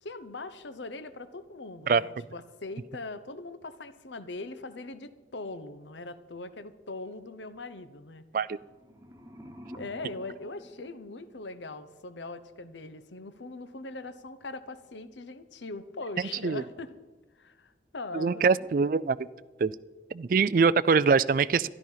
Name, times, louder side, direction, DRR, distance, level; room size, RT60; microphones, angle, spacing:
voice 1, 0.0-8.2 9.7-16.9 17.4-18.5 18.8-18.9 20.7-21.0, left 2 dB, 85° left, 12 dB, 1.0 m, -41 dB
sound 1, 8.6-11.6, equal, 15° right, 1.1 m, -49 dB
voice 2, 18.1-19.2 19.6-19.7 20.1-21.7, right 5 dB, 50° right, 19 dB, 0.3 m, -23 dB
13.0 x 12.0 x 5.7 m, 1.2 s
head